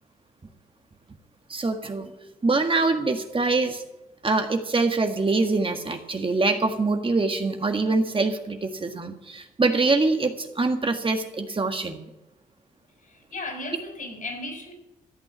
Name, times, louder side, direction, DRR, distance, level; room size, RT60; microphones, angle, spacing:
voice 1, 1.5-2.1 2.4-3.8 4.2-12.0, right 3 dB, 35° right, 1.6 m, -24 dB
voice 2, 13.0-14.7, left 2 dB, 55° left, 5.5 m, -35 dB
14.5 x 6.1 x 9.6 m
supercardioid pair, 50°, 16 cm